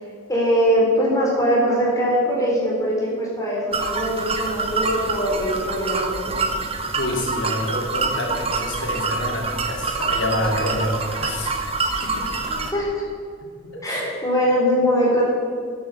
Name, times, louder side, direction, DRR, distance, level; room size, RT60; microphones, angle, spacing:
voice 1, 0.3-6.4 12.5-12.9 13.8-15.2, equal, 20° left, -4 dB, 3.9 m, -21 dB
sound 1, 3.7-12.7, right 3 dB, 30° right, 0.9 m, -26 dB
voice 2, 7.0-12.5 13.7-14.0, left 1 dB, 75° left, -1 dB, 2.9 m, -28 dB
11.0 x 8.7 x 7.0 m, 2.1 s
head